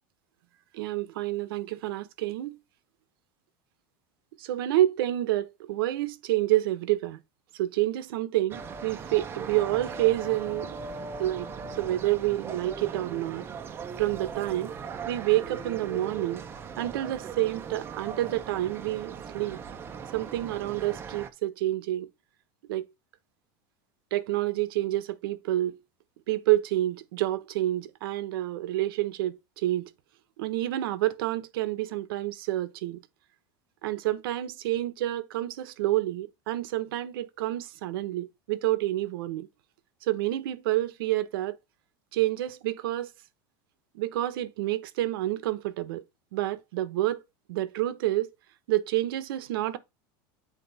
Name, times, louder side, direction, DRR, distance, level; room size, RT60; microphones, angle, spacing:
voice 1, 0.7-2.6 4.4-7.2 7.5-10.7 11.2-11.5 11.8-13.5 14.0-14.7 15.1-16.5 16.8-19.6 20.1-22.1 22.7-22.8 24.1-25.8 26.3-29.9 30.4-33.0 33.8-39.5 40.0-41.5 42.1-43.1 43.9-46.0 46.3-47.2 47.5-48.3 48.7-49.8, right 15 dB, 85° right, 1.2 m, -28 dB
sound 1, 8.5-21.3, right 6 dB, 20° right, 0.8 m, -39 dB
8.5 x 4.6 x 4.2 m
supercardioid pair, 165°, 12 cm